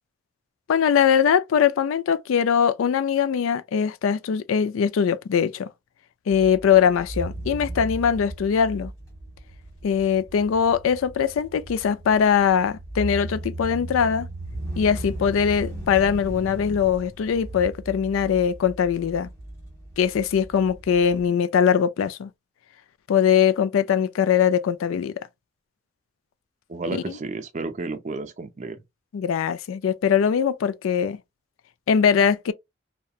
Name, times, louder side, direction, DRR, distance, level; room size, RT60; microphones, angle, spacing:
voice 1, 0.7-5.7 6.3-8.9 9.8-14.3 14.8-19.3 20.0-22.3 23.1-25.1 27.1-27.2 29.1-31.2 31.9-32.5, left 7 dB, 90° left, 0.3 m, -21 dB
sound 1, 6.3-21.3, right 1 dB, 15° left, 1.5 m, -37 dB
voice 2, 26.7-28.8, right 3 dB, 35° right, 0.4 m, -32 dB
2.8 x 2.2 x 2.3 m
head